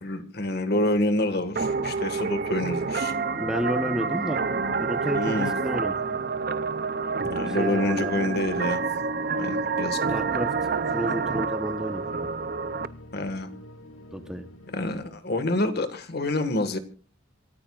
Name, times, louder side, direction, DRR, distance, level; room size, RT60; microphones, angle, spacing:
voice 1, 0.0-3.1 5.1-5.5 7.3-8.8 9.4-10.0 13.1-13.5 14.7-16.8, left 1 dB, 50° left, 9 dB, 1.8 m, -27 dB
sound 1, 0.7-15.1, left 2 dB, 80° left, 2.4 m, -46 dB
sound 2, 1.6-12.9, right 4 dB, 45° right, 0.6 m, -28 dB
voice 2, 3.3-4.4 4.8-5.9 7.5-8.1 10.1-12.0 14.1-14.4, equal, 5° right, 6 dB, 1.0 m, -31 dB
27.0 x 13.5 x 2.5 m, 0.40 s
head